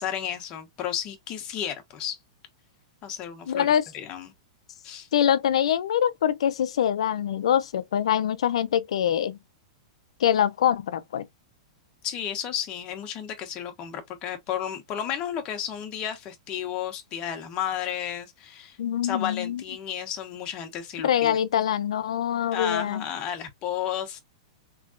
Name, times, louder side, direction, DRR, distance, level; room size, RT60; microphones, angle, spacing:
voice 1, 0.0-2.2 3.0-4.3 4.8-5.1 12.0-18.8 19.0-21.4 22.5-24.2, left 9 dB, 30° left, 1.0 m, -32 dB
voice 2, 3.5-3.8 5.1-9.4 10.2-11.2 18.8-19.6 21.0-23.0, left 9 dB, 80° left, 0.5 m, -24 dB
3.6 x 3.3 x 2.4 m
supercardioid pair, 150°, 3 cm